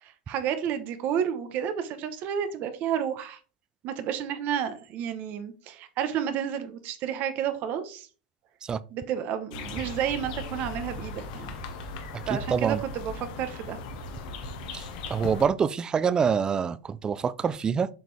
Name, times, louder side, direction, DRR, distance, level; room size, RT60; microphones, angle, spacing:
voice 1, 0.0-3.4 3.8-8.1 8.9-11.5 12.3-13.8, right 9 dB, 40° right, 1.0 m, -31 dB
sound 1, 9.5-15.5, left 3 dB, 70° left, 1.6 m, -38 dB
voice 2, 12.5-12.8 14.7-17.9, right 6 dB, 20° right, 0.4 m, -26 dB
7.7 x 5.1 x 3.3 m
supercardioid pair, 150°, 4 cm